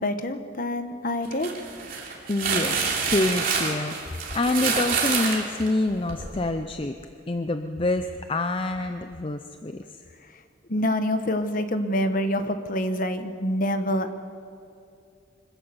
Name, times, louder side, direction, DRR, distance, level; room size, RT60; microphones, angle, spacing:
voice 1, 0.0-1.5 10.7-14.2, left 1 dB, 45° left, 9 dB, 1.2 m, -26 dB
sound 1, 1.2-6.3, right 5 dB, 45° right, 3.3 m, -27 dB
voice 2, 2.3-7.0 7.3-10.0, left 2 dB, 30° left, 7 dB, 0.6 m, -27 dB
24.5 x 16.5 x 7.0 m, 2.5 s
head